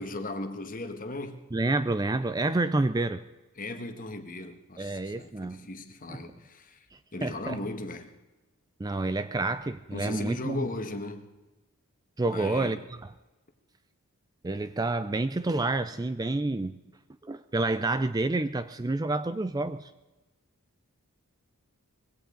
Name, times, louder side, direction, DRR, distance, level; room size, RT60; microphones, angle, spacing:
voice 1, 0.0-1.4 3.6-6.9 7.1-8.1 9.9-11.3 12.3-12.8, left 2 dB, 40° left, 1.5 m, -37 dB
voice 2, 1.5-3.2 4.8-5.7 6.1-6.2 6.9-7.6 8.8-10.6 12.2-12.8 14.4-16.8 17.2-19.9, right 2 dB, 15° right, 0.4 m, -29 dB
20.5 x 17.0 x 3.9 m
head